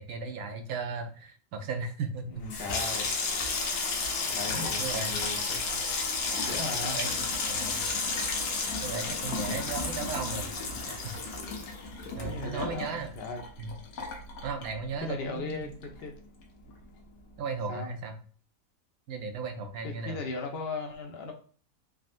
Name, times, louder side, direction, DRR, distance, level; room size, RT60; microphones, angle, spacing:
voice 1, 0.0-2.5 4.8-5.2 6.9-7.9 8.8-11.1 12.2-13.1 13.6-13.7 14.4-15.7 17.4-18.1 19.1-20.2, right 4 dB, 80° right, 6 dB, 1.0 m, -36 dB
Water tap faucet / Sink (filling or washing), 2.3-15.2 15.5-16.2 16.4-16.7, left 4 dB, 90° left, 1.1 m, -32 dB
voice 2, 2.3-3.1 4.2-5.9 6.4-7.0 12.2-13.4 15.0-16.1 17.7-17.9 19.8-21.3, left 3 dB, 60° left, 2 dB, 0.7 m, -37 dB
3.6 x 2.0 x 2.5 m, 0.43 s
omnidirectional pair, 1.5 m